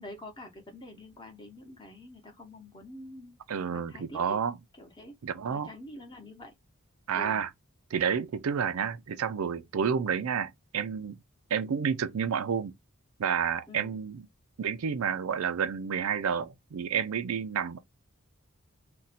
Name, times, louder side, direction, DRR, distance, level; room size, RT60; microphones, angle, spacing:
voice 1, 0.0-3.4 3.7-4.4 4.8-5.2 5.5-6.5 7.1-7.4 13.7-13.9, left 1 dB, 20° left, 0.9 m, -46 dB
voice 2, 3.5-4.6 5.2-5.7 7.1-7.5 7.9-11.2 11.5-12.7 13.2-14.3 14.6-17.8, right 7 dB, 85° right, 0.4 m, -30 dB
2.6 x 2.2 x 4.0 m
head